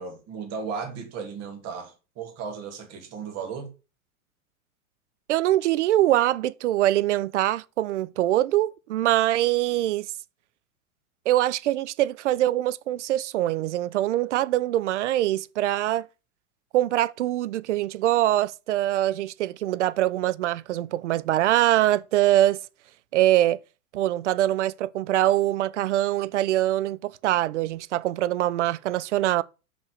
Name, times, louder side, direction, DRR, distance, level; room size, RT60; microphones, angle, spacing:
voice 1, 0.0-3.7, right 5 dB, 35° right, 2.8 m, -35 dB
voice 2, 5.3-10.1 11.3-16.1 16.7-22.6 23.1-23.6 23.9-29.4, right 14 dB, 55° right, 0.6 m, -23 dB
5.9 x 5.6 x 6.6 m
figure-of-eight pair, 95°, 44 cm